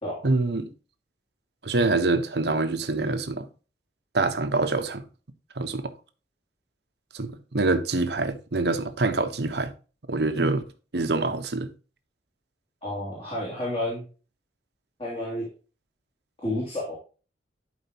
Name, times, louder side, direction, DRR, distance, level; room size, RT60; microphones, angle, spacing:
voice 1, 0.2-0.7 1.6-3.5 4.1-5.0 5.6-5.9 7.1-9.7 10.1-10.6 10.9-11.7, right 3 dB, 60° right, 1.0 m, -25 dB
voice 2, 12.8-14.1 15.0-15.5 16.4-16.9, left 1 dB, 30° left, 2.7 m, -30 dB
11.5 x 5.0 x 2.9 m
head